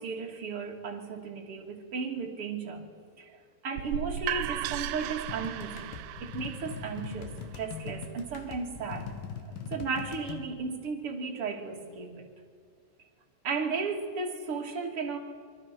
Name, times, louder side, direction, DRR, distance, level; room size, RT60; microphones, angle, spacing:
voice 1, 0.0-2.8 3.2-3.4 3.6-9.1 9.4-12.2 13.4-15.2, right 4 dB, 35° right, 1 dB, 2.8 m, -35 dB
sound 1, 3.8-9.6, right 13 dB, 80° right, 3.1 m, -37 dB
sound 2, 5.3-10.4, left 6 dB, 60° left, 3.2 m, -41 dB
28.0 x 25.0 x 6.2 m, 2.1 s
omnidirectional pair, 5.5 m